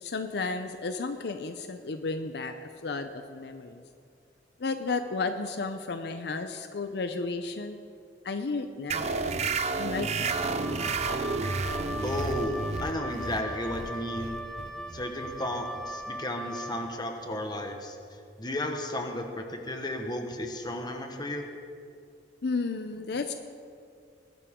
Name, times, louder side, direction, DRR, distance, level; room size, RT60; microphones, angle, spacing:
voice 1, 0.0-2.5 2.8-3.8 4.6-7.8 8.2-10.7 22.4-23.3, left 3 dB, 65° left, 8 dB, 0.6 m, -33 dB
sound 1, 8.9-16.0, right 4 dB, 40° right, 0.6 m, -32 dB
Wind instrument woodwind instrument, 10.2-16.9, equal, 5° left, 0.9 m, -39 dB
voice 2, 12.0-14.4 14.9-18.0 18.4-21.4, left 1 dB, 25° left, 4 dB, 1.2 m, -33 dB
20.5 x 12.0 x 3.7 m, 2.3 s
head